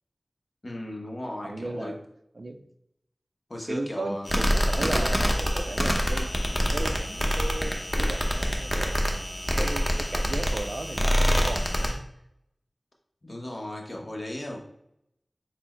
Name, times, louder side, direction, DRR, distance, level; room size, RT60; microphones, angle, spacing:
voice 1, 0.6-2.0 3.5-4.3 13.2-14.6, left 1 dB, 55° left, 0 dB, 0.9 m, -36 dB
voice 2, 1.4-2.0 2.4-2.6 3.7-9.2 9.6-12.1, right 2 dB, 70° right, 7 dB, 0.4 m, -36 dB
sound 1, 4.3-11.9, equal, 15° left, 0.7 m, -25 dB
4.3 x 2.0 x 4.3 m, 0.77 s
wide cardioid pair, 45°, 0 cm